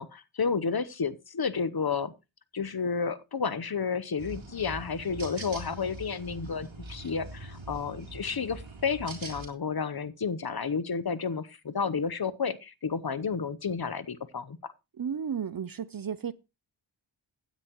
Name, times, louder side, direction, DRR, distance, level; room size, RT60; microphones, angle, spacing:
voice 1, 0.0-2.1 2.5-14.6, left 5 dB, 55° left, 0.9 m, -31 dB
sound 1, 4.2-9.5, right 2 dB, 90° right, 3.2 m, -43 dB
voice 2, 15.0-16.3, right 7 dB, 50° right, 0.6 m, -33 dB
16.0 x 9.8 x 3.0 m
cardioid pair, 40°, 45 cm